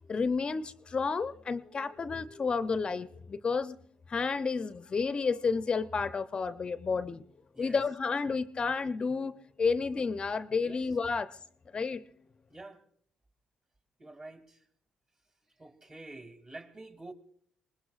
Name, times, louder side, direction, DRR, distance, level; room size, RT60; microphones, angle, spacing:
voice 1, 0.1-3.8 4.1-7.2 7.6-9.3 9.6-11.4 11.7-12.0, left 4 dB, 40° left, 0.6 m, -31 dB
voice 2, 12.5-12.8 14.0-14.6 15.6-17.1, right 2 dB, 35° right, 2.4 m, -47 dB
24.0 x 19.5 x 2.4 m
hypercardioid pair, 55°, 2 cm